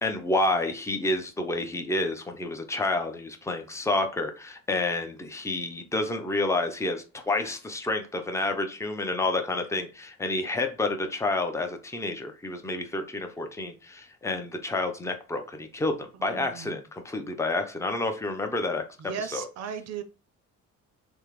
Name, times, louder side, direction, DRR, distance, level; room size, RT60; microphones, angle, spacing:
voice 1, 0.0-18.8 19.3-19.5, left 2 dB, 10° left, 0.5 m, -29 dB
voice 2, 16.2-16.8 19.0-20.0, right 7 dB, 60° right, 0.5 m, -36 dB
3.4 x 2.0 x 3.0 m
cardioid pair, 90°, 30 cm